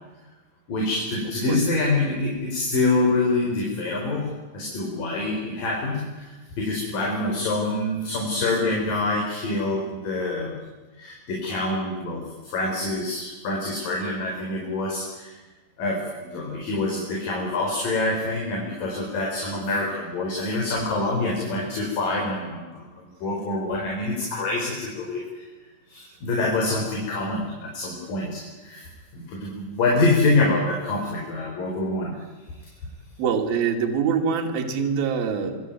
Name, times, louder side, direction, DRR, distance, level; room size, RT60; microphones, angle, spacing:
voice 1, 0.7-4.3 4.5-10.6 11.0-15.4 15.8-25.5 25.9-32.1, left 2 dB, 55° left, -1 dB, 6.2 m, -26 dB
voice 2, 33.2-35.6, right 6 dB, 65° right, 2 dB, 4.3 m, -24 dB
26.0 x 22.5 x 9.4 m, 1.2 s
omnidirectional pair, 4.9 m